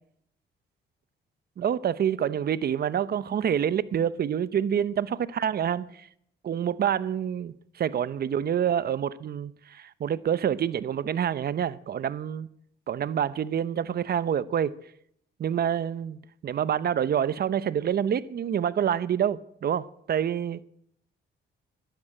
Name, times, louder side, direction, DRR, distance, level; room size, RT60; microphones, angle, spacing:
voice 1, 1.6-6.1 6.4-12.5 12.9-14.7 15.4-20.6, right 9 dB, 50° right, 0.8 m, -27 dB
13.0 x 11.5 x 8.9 m
cardioid pair, 90°, 20 cm